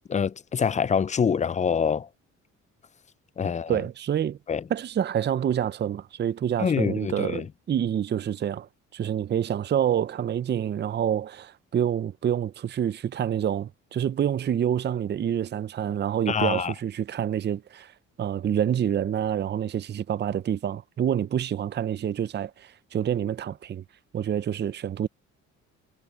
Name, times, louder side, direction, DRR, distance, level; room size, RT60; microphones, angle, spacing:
voice 1, 0.1-2.1 3.4-3.8 4.5-4.6 6.6-7.4 16.3-16.7, left 6 dB, 25° left, 0.4 m, -25 dB
voice 2, 3.7-4.4 4.7-23.8 24.1-25.1, right 9 dB, 35° right, 0.5 m, -27 dB
cardioid pair, 90°, 30 cm